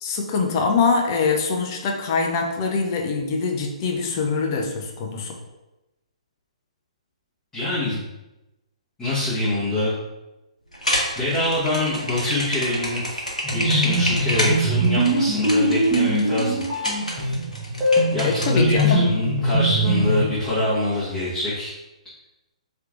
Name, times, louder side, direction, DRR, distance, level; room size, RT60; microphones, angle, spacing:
voice 1, 0.0-5.3 18.2-19.0, left 4 dB, 35° left, 2 dB, 0.5 m, -23 dB
voice 2, 7.5-8.0 9.0-9.9 11.1-13.3 13.5-16.6 18.1-18.2 18.5-21.7, left 1 dB, 10° left, -12 dB, 1.1 m, -24 dB
sound 1, 10.7-18.8, equal, 90° left, 0.9 m, -28 dB
sound 2, 13.4-20.3, right 1 dB, 15° right, 0.9 m, -22 dB
3.3 x 2.9 x 2.5 m, 1.0 s
figure-of-eight pair, 125°, 4 cm